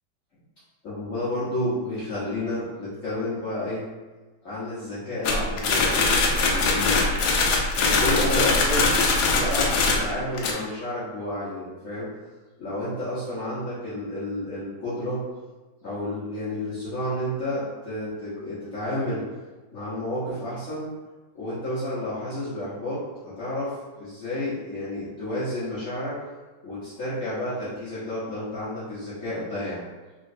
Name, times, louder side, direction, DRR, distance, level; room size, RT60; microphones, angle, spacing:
voice 1, 0.8-3.8 4.4-7.0 7.8-8.9 9.3-12.1 12.6-15.2 15.8-19.2 19.7-20.9 21.3-26.2 26.6-29.8, left 1 dB, 50° left, -11 dB, 1.2 m, -30 dB
sound 1, 5.2-10.5, left 3 dB, 80° left, 1.3 m, -22 dB
3.9 x 3.1 x 2.6 m, 1.3 s
omnidirectional pair, 2.0 m